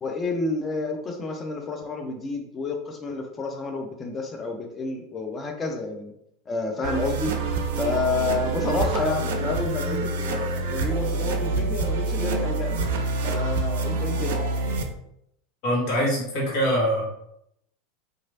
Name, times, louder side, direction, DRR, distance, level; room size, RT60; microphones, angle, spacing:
voice 1, 0.0-6.1 6.5-7.3 7.7-12.8 13.2-14.4, left 3 dB, 25° left, 3 dB, 0.5 m, -29 dB
sound 1, 6.8-14.8, right 3 dB, 65° right, 0.4 m, -26 dB
voice 2, 15.6-17.0, equal, 55° left, -3 dB, 1.2 m, -23 dB
2.9 x 2.4 x 2.7 m, 0.77 s
figure-of-eight pair, 85°, 0 cm